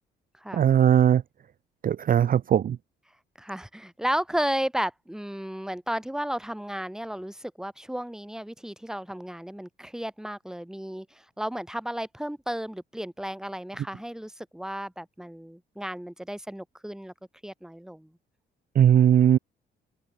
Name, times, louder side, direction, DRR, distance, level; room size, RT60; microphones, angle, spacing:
voice 1, 0.5-1.2 1.8-2.8 18.8-19.4, right 9 dB, 45° right, 0.6 m, -19 dB
voice 2, 3.4-17.1 17.4-18.1, equal, 5° right, 1.8 m, -33 dB
cardioid pair, 90°, 20 cm